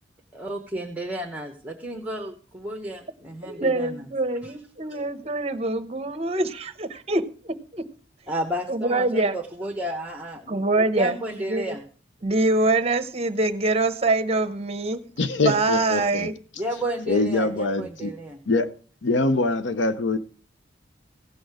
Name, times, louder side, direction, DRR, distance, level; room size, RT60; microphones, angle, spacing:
voice 1, 0.3-4.1 4.4-4.5 4.9-5.1 8.3-10.6 11.0-11.8 16.6-18.4, right 1 dB, 5° right, 1.0 m, -32 dB
voice 2, 3.4-7.8 8.7-9.4 10.5-11.2 11.5-11.8 12.2-15.0 15.4-16.3, right 2 dB, 35° right, 0.8 m, -24 dB
voice 3, 15.2-16.3 17.1-18.1 18.5-18.7 19.0-20.2, left 3 dB, 80° left, 0.7 m, -23 dB
16.5 x 6.3 x 4.8 m
head